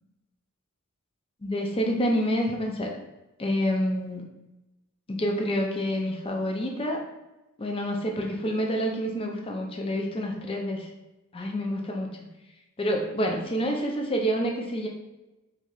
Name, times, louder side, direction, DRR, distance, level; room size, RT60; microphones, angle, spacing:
voice 1, 1.4-2.9 3.4-4.2 5.1-7.0 7.6-10.9 11.3-12.1 12.8-14.9, equal, 25° left, 1 dB, 0.5 m, -28 dB
4.1 x 3.0 x 2.4 m, 1.0 s
head